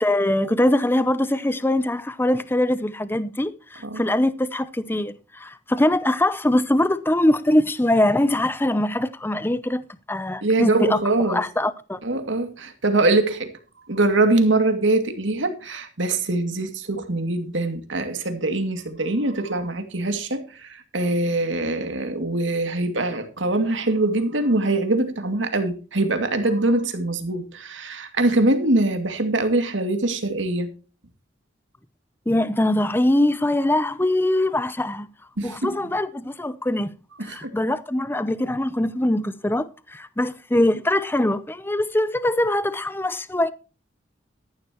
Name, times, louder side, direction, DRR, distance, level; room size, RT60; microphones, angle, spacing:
voice 1, 0.0-12.0 32.3-35.1 35.4-36.9 37.2-43.5, left 1 dB, 10° left, 0.6 m, -22 dB
voice 2, 10.4-11.4 12.0-13.5 13.9-30.7 35.4-35.8 37.2-37.5, right 2 dB, 80° right, 2.4 m, -23 dB
14.0 x 11.0 x 3.0 m
head